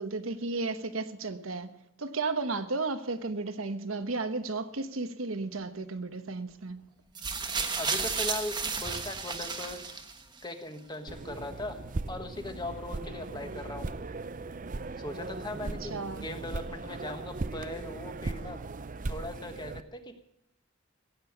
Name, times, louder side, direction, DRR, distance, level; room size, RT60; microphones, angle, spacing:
voice 1, 0.0-1.7 2.0-6.8 15.6-16.3, right 3 dB, 70° right, 1.1 m, -34 dB
sound 1, 7.2-10.4 11.3-11.4, right 5 dB, 20° right, 1.2 m, -33 dB
voice 2, 7.8-10.0 10.4-11.8 12.1-13.9 15.0-18.6 19.1-20.1, left 1 dB, 20° left, 1.3 m, -39 dB
sound 2, 11.1-19.8, right 3 dB, 40° right, 0.6 m, -38 dB
16.0 x 9.1 x 8.0 m
head